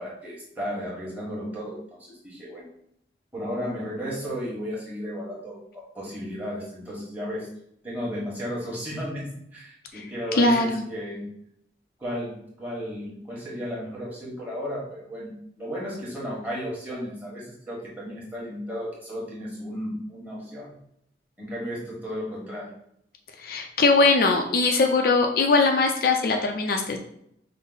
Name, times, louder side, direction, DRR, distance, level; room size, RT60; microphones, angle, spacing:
voice 1, 0.0-2.7 3.3-7.5 7.8-11.3 12.0-15.3 15.6-20.8 21.4-22.7, equal, 10° right, -6 dB, 1.3 m, -34 dB
voice 2, 10.3-10.8 23.4-27.0, left 3 dB, 55° left, 3 dB, 0.4 m, -21 dB
5.4 x 2.0 x 3.9 m, 0.72 s
head